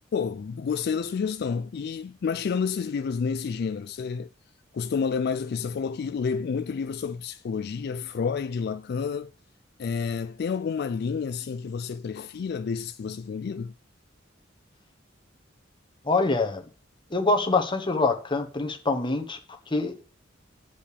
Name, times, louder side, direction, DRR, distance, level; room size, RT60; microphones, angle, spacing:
voice 1, 0.1-4.3 4.7-9.3 9.8-13.7, left 6 dB, 55° left, 0.3 m, -29 dB
voice 2, 16.0-16.6 17.1-19.4 19.7-19.9, left 3 dB, 25° left, 1.2 m, -25 dB
8.6 x 5.1 x 6.9 m
head